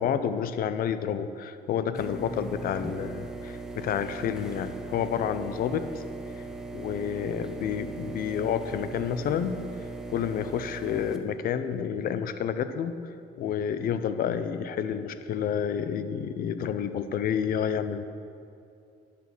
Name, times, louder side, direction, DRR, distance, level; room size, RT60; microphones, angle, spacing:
voice 1, 0.0-6.0 6.4-6.5 6.7-9.6 10.1-12.9 13.4-18.0, left 8 dB, 60° left, 11 dB, 0.6 m, -29 dB
sound 1, 1.9-11.2, right 2 dB, 5° right, 0.7 m, -39 dB
11.5 x 5.9 x 6.1 m, 2.6 s
cardioid pair, 110°, 17 cm